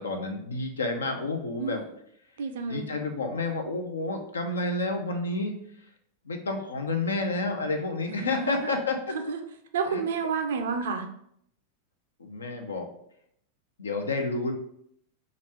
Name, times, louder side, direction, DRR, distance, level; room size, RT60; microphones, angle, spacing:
voice 1, 0.0-1.8 2.7-5.5 6.2-9.2 9.9-10.0 12.2-12.9 13.8-14.5, left 3 dB, 75° left, 4 dB, 0.6 m, -30 dB
voice 2, 2.4-2.9 8.1-8.8 9.1-9.4 9.7-11.1, right 5 dB, 60° right, 6 dB, 0.5 m, -30 dB
3.1 x 2.5 x 4.2 m, 0.70 s
figure-of-eight pair, 90°, 0 cm